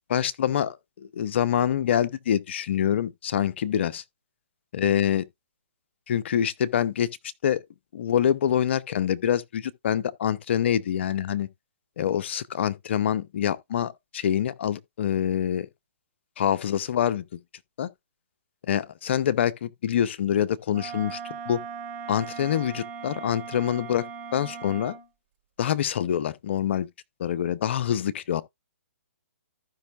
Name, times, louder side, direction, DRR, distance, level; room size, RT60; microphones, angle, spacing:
voice 1, 0.0-4.0 4.7-5.2 6.1-7.1 7.4-7.6 7.9-11.5 12.0-15.7 16.4-17.4 17.8-17.9 18.7-21.2 21.4-21.6 22.1-24.1 24.3-24.9 25.6-26.9 27.2-28.4, left 9 dB, 50° left, 0.9 m, -25 dB
Wind instrument woodwind instrument, 20.7-25.1, right 6 dB, 35° right, 4.4 m, -38 dB
14.5 x 5.6 x 2.5 m
figure-of-eight pair, 130°, 8 cm